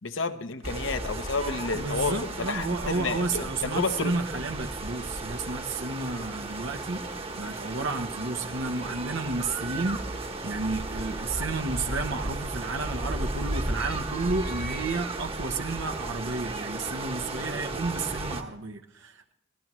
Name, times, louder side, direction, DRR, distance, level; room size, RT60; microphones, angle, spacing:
voice 1, 0.0-4.1, left 4 dB, 75° left, 1.0 m, -31 dB
sound 1, 0.6-18.4, right 2 dB, 30° right, 1.1 m, -34 dB
voice 2, 1.7-7.0 7.4-19.3, right 3 dB, 80° right, 1.0 m, -32 dB
24.0 x 17.0 x 3.1 m
head